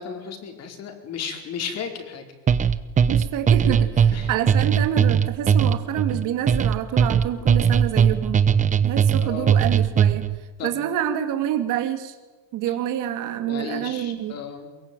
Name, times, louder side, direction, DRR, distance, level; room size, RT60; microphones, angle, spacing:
voice 1, 0.0-2.3 4.1-4.3 9.2-9.6 10.6-10.7 12.7-12.8 13.5-14.7, left 6 dB, 40° left, 5 dB, 4.7 m, -34 dB
sound 1, 2.5-10.4, right 7 dB, 20° right, 0.9 m, -19 dB
voice 2, 3.1-8.4 8.8-10.3 10.6-12.1 12.5-14.4, right 10 dB, 50° right, 8 dB, 2.6 m, -27 dB
23.0 x 22.5 x 9.3 m, 1.2 s
cardioid pair, 145°, 38 cm